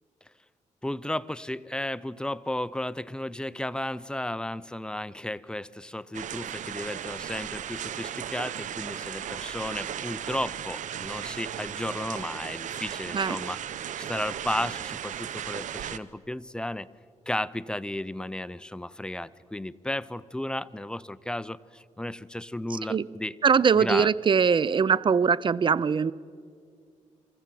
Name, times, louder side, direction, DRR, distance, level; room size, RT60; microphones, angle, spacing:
voice 1, 0.8-16.9 17.3-23.4 23.7-24.1, left 1 dB, 5° left, 17 dB, 0.5 m, -34 dB
sound 1, 6.1-16.0, right 10 dB, 75° right, 0.7 m, -36 dB
voice 2, 23.4-26.1, right 6 dB, 40° right, 20 dB, 0.5 m, -22 dB
23.5 x 15.0 x 7.6 m, 2.2 s
cardioid pair, 80°, 13 cm